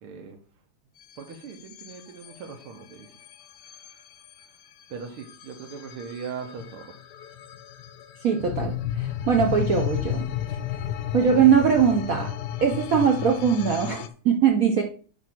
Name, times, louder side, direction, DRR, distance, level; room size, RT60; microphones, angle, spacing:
voice 1, 0.0-0.4 1.2-3.1 4.9-6.9, right 6 dB, 80° right, 1.9 m, -39 dB
sound 1, 1.0-14.1, left 11 dB, 75° left, 1.0 m, -34 dB
voice 2, 8.2-10.3 11.1-12.3 12.6-14.8, right 7 dB, 60° right, 0.9 m, -21 dB
8.8 x 3.2 x 6.0 m
omnidirectional pair, 2.3 m